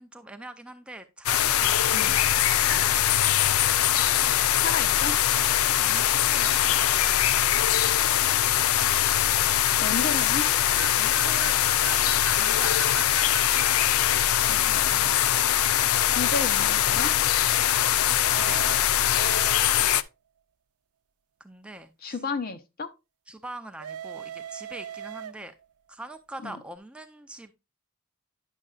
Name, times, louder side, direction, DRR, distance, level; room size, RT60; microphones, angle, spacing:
voice 1, 0.0-3.1 5.8-6.8 9.3-10.1 11.0-11.8 12.3-13.0 15.3-15.6 18.1-18.9 21.4-22.2 23.3-25.5 25.9-27.5, right 1 dB, 5° right, 0.5 m, -43 dB
sound 1, 1.3-20.0, left 11 dB, 75° left, 0.4 m, -22 dB
voice 2, 4.6-5.2 9.8-10.5 14.5-15.2 16.1-17.2 22.0-22.9 26.4-26.6, left 4 dB, 45° left, 0.7 m, -32 dB
sound 2, 10.8-13.5 18.3-19.9 23.8-25.7, right 9 dB, 90° right, 0.5 m, -39 dB
9.9 x 6.4 x 2.4 m
head